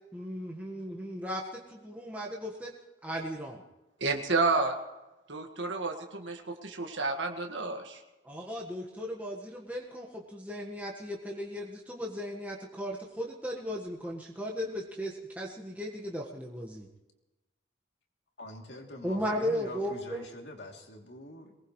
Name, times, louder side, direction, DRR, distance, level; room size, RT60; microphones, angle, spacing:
voice 1, 0.1-2.7 3.0-3.6 8.2-16.9 19.0-20.2, equal, 10° right, -2 dB, 1.5 m, -36 dB
voice 2, 4.0-4.7 5.3-8.0, right 3 dB, 90° right, 3 dB, 1.8 m, -30 dB
voice 3, 18.4-21.6, left 1 dB, 65° left, 1 dB, 3.0 m, -45 dB
23.0 x 19.0 x 3.2 m, 1.1 s
head